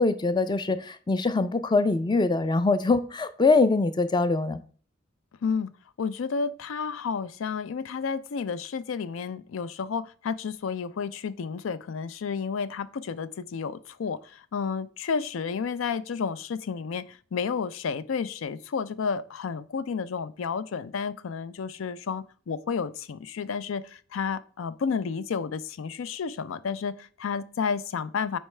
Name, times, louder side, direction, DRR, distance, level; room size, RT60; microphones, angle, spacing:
voice 1, 0.0-4.6, left 3 dB, 25° left, 0.4 m, -23 dB
voice 2, 6.0-28.4, left 5 dB, 85° left, 0.4 m, -31 dB
7.9 x 4.5 x 3.2 m
head